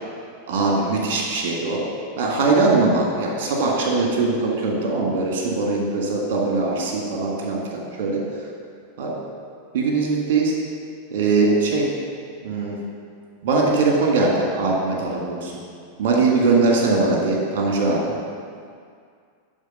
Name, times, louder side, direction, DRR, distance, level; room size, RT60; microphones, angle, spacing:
voice 1, 0.5-1.8 2.2-8.2 9.0-9.1 9.7-10.5 11.1-11.9 12.4-12.8 13.4-15.5 16.0-18.1, right 3 dB, 50° right, -2 dB, 1.7 m, -21 dB
11.0 x 4.1 x 5.2 m, 2.2 s
figure-of-eight pair, 90°, 0 cm